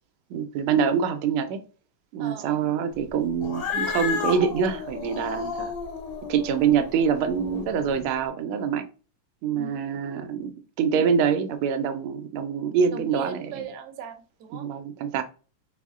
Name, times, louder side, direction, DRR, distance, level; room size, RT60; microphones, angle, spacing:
voice 1, 0.3-1.6 2.1-5.7 6.3-8.9 9.4-13.5 14.5-15.2, right 7 dB, 90° right, 1.4 m, -25 dB
voice 2, 2.2-2.6 9.5-9.7 12.9-14.7, right 6 dB, 65° right, 1.1 m, -39 dB
Cat, 3.4-8.0, left 5 dB, 90° left, 2.1 m, -32 dB
4.0 x 2.1 x 3.5 m
omnidirectional pair, 2.3 m